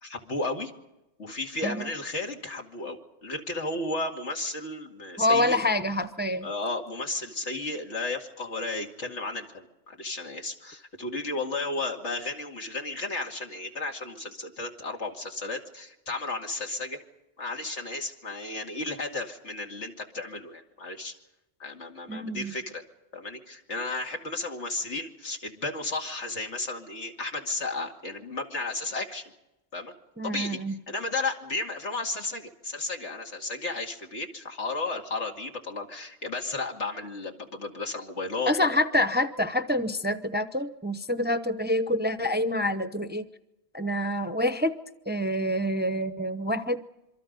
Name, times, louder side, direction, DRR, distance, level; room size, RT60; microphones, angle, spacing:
voice 1, 0.0-0.7 1.2-5.6 6.4-17.0 17.4-21.1 21.6-22.8 23.1-29.2 29.7-29.9 30.2-30.6 30.9-38.8, left 2 dB, 80° left, 2 dB, 2.7 m, -33 dB
voice 2, 5.2-6.5 22.1-22.5 30.2-30.8 38.5-43.3 43.7-44.8 45.1-46.8, left 1 dB, 10° right, 10 dB, 0.7 m, -27 dB
26.5 x 24.0 x 5.3 m, 0.91 s
omnidirectional pair, 1.2 m